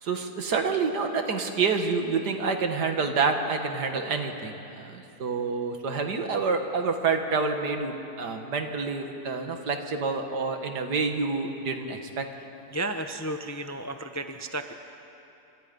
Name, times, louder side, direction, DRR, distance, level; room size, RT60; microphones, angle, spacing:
voice 1, 0.0-12.3, right 4 dB, 85° right, 5 dB, 2.3 m, -28 dB
voice 2, 12.7-14.7, right 2 dB, 20° left, 7 dB, 0.5 m, -33 dB
29.0 x 25.5 x 5.4 m, 2.9 s
omnidirectional pair, 1.7 m